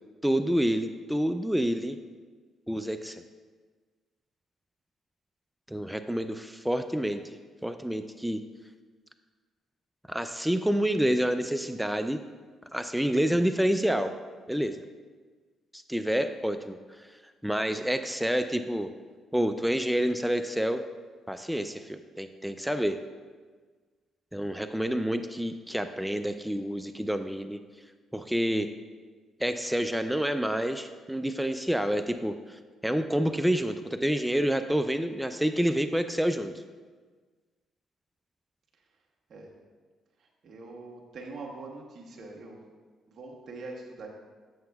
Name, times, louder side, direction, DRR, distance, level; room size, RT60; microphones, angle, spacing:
voice 1, 0.2-2.0 2.7-3.2 5.7-7.2 7.6-8.4 10.1-12.2 12.7-14.1 14.5-14.8 15.7-16.8 17.4-18.9 19.3-20.8 21.3-23.0 24.3-27.6 28.1-28.7 29.4-32.3 32.8-36.5, equal, 5° right, 8 dB, 0.3 m, -28 dB
voice 2, 40.2-42.7 43.1-44.1, right 3 dB, 60° right, -1 dB, 1.2 m, -43 dB
8.5 x 7.8 x 2.3 m, 1.5 s
cardioid pair, 90°, 0 cm